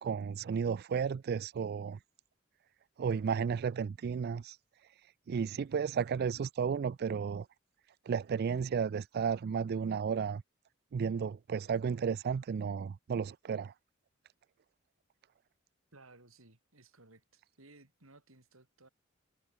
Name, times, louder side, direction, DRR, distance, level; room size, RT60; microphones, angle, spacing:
voice 1, 0.0-2.0 3.0-7.5 8.1-10.4 10.9-13.7, right 6 dB, 50° right, 0.3 m, -33 dB
voice 2, 15.9-18.9, right 2 dB, 75° right, 4.1 m, -59 dB
head